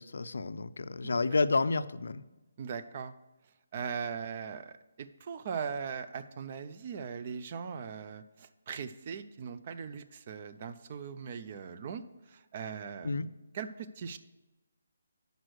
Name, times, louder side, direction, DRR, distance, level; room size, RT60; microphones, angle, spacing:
voice 1, 0.0-2.2 13.0-13.3, left 3 dB, 75° left, 13 dB, 0.4 m, -30 dB
voice 2, 2.6-3.1 3.7-13.3 13.5-14.2, right 6 dB, 30° right, 10 dB, 0.3 m, -40 dB
6.2 x 5.1 x 6.3 m, 1.1 s
hypercardioid pair, 175°, 0 cm